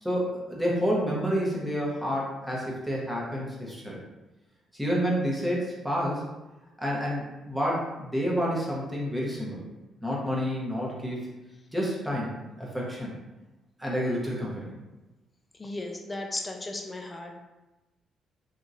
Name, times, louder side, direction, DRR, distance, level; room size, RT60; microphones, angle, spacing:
voice 1, 0.0-4.0 4.7-6.2 6.8-9.6 10.0-11.3 11.7-13.1 13.8-14.7, equal, 5° right, -4 dB, 0.9 m, -29 dB
voice 2, 15.6-17.3, left 2 dB, 20° left, 3 dB, 0.4 m, -35 dB
2.9 x 2.6 x 2.5 m, 1.0 s
cardioid pair, 90°, 0 cm